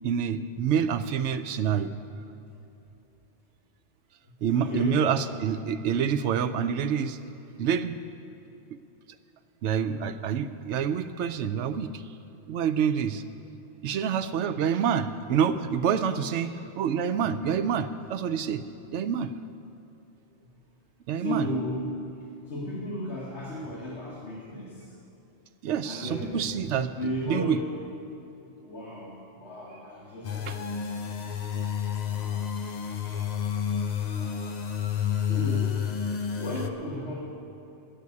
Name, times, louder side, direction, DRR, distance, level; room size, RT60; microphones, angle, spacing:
voice 1, 0.0-1.9 4.4-7.2 7.6-8.0 9.6-12.0 12.5-13.2 13.8-18.6 18.9-19.3 21.1-21.4 25.6-26.9 27.3-27.6 30.5-30.6, right 7 dB, 80° right, 11 dB, 0.9 m, -27 dB
voice 2, 4.2-5.0 13.9-14.1 16.3-16.5 20.4-20.5 21.2-24.9 25.8-26.5 27.0-27.8 28.6-31.5 32.0-32.5 33.0-33.5 34.1-34.5 35.1-35.9 36.4-37.3, left 1 dB, 75° left, -6 dB, 1.9 m, -36 dB
sound 1, 30.2-36.7, left 8 dB, 50° left, 0.6 m, -30 dB
9.7 x 8.3 x 9.5 m, 2.9 s
omnidirectional pair, 1.2 m